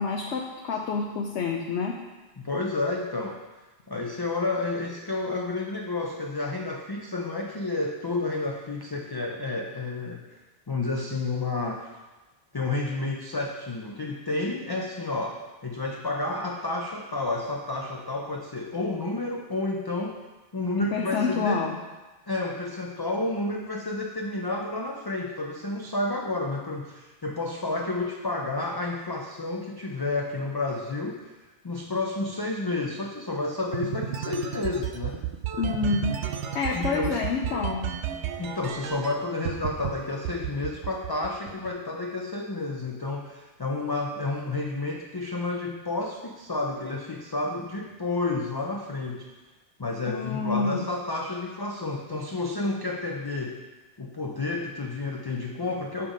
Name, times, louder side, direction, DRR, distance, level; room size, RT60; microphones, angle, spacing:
voice 1, 0.0-2.0 20.8-21.8 35.6-36.2 36.5-37.9 50.1-50.9, left 4 dB, 70° left, 0 dB, 1.0 m, -28 dB
voice 2, 2.4-3.4 3.9-10.4 10.7-11.9 12.5-20.2 20.5-21.6 22.3-31.3 31.6-35.2 36.7-37.2 38.4-49.3 49.8-53.6 54.0-56.1, left 2 dB, 35° left, 0 dB, 0.4 m, -30 dB
sound 1, 33.7-39.1 39.4-39.9 40.2-41.7, right 10 dB, 75° right, 0.9 m, -32 dB
7.1 x 5.7 x 5.0 m, 1.2 s
omnidirectional pair, 1.2 m